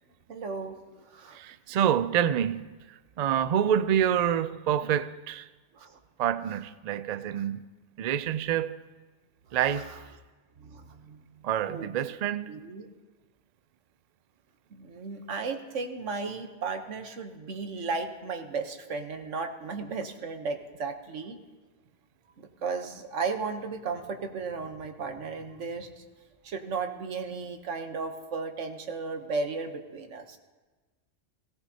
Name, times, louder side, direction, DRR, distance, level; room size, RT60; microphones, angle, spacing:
voice 1, 0.3-0.8 1.1-1.4 5.7-5.9 9.8-10.0 10.6-11.2 11.6-11.9 12.5-12.9 14.7-21.4 22.4-26.0 26.4-30.4, right 4 dB, 90° right, 1.4 m, -35 dB
voice 2, 1.3-2.7 3.2-5.5 6.2-7.6 8.0-8.8 9.5-9.9 11.4-12.5, right 9 dB, 65° right, 0.4 m, -27 dB
17.5 x 16.5 x 2.8 m
omnidirectional pair, 1.2 m